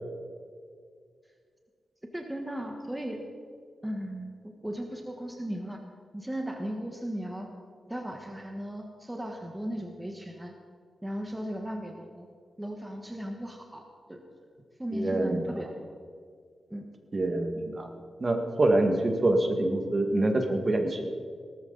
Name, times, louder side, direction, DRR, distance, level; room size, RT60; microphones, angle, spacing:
voice 1, 2.1-3.3 3.8-5.8 6.1-7.5 7.9-10.5 11.0-12.3 12.6-14.2 14.8-15.9 16.7-16.8, equal, 10° right, 2 dB, 1.5 m, -36 dB
voice 2, 14.9-15.4 17.1-17.9 18.2-21.0, right 2 dB, 35° right, 4 dB, 2.0 m, -25 dB
18.5 x 13.5 x 4.1 m, 2.1 s
cardioid pair, 80°, 0 cm